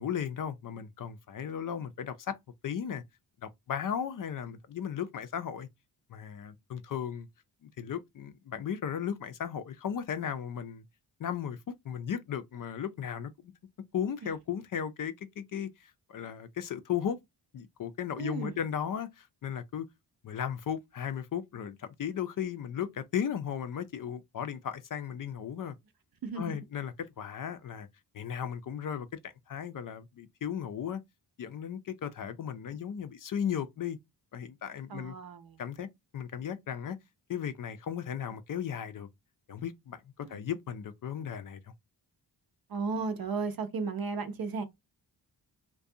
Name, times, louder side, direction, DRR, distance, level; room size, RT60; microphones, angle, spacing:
voice 1, 0.0-2.4 2.6-3.0 3.4-5.7 6.1-7.3 7.6-10.8 11.2-13.5 13.9-17.2 17.5-19.9 20.2-25.8 26.4-27.9 28.1-31.0 31.4-34.0 34.3-35.2 35.6-35.9 36.1-37.0 37.3-39.1 39.5-41.7, left 8 dB, 50° left, 0.4 m, -36 dB
voice 2, 18.2-18.6 26.2-26.6 34.9-35.6 40.2-40.4 42.7-44.6, right 4 dB, 55° right, 0.7 m, -35 dB
2.4 x 2.2 x 2.6 m
cardioid pair, 55°, 45 cm